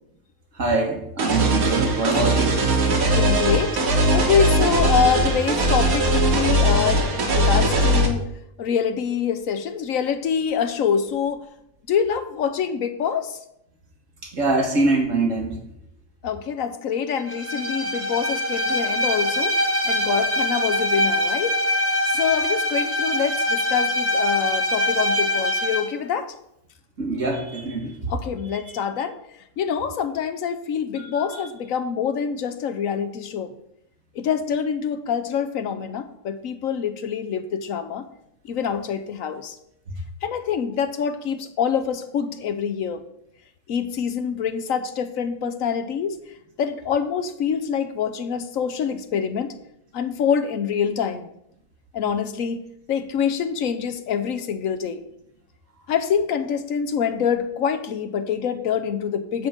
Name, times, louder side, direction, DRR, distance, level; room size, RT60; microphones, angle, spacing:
voice 1, 0.6-2.6 14.3-15.5 27.0-27.9 31.2-31.3, right 2 dB, 60° right, 0 dB, 2.2 m, -23 dB
sound 1, 1.2-8.1, right 1 dB, 85° right, 1.8 m, -20 dB
voice 2, 3.1-8.3 8.6-11.5 11.9-13.4 16.2-21.6 22.0-26.3 28.1-29.2 29.6-33.5 34.1-38.1 38.4-39.6 40.2-43.0 43.7-49.6 49.9-51.3 51.9-52.6 52.9-55.0 55.9-59.5, left 7 dB, 75° left, 10 dB, 1.1 m, -25 dB
Bowed string instrument, 17.3-25.9, left 1 dB, 15° right, 0.5 m, -23 dB
9.7 x 3.9 x 7.3 m, 0.77 s
omnidirectional pair, 1.5 m